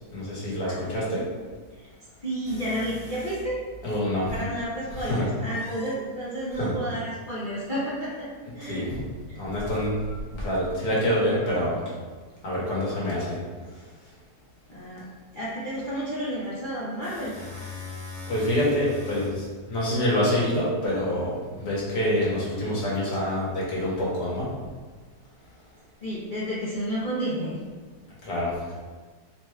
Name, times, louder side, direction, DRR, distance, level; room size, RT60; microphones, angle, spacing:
voice 1, 0.1-1.3 3.8-4.5 4.9-5.3 6.6-6.7 8.6-9.0 9.3-10.0 10.3-11.8 12.4-13.4 18.3-24.5 28.2-28.6, equal, 80° left, -6 dB, 1.9 m, -26 dB
voice 2, 2.2-3.6 4.3-8.3 8.5-8.8 14.7-15.0 15.3-17.3 26.0-27.6, equal, 45° left, -10 dB, 0.7 m, -31 dB
sound 1, 2.4-4.1 5.3-6.0 8.0-8.2 9.4-11.0 16.5-20.7, left 2 dB, 10° left, 1.0 m, -41 dB
4.5 x 4.0 x 2.3 m, 1.4 s
omnidirectional pair, 1.7 m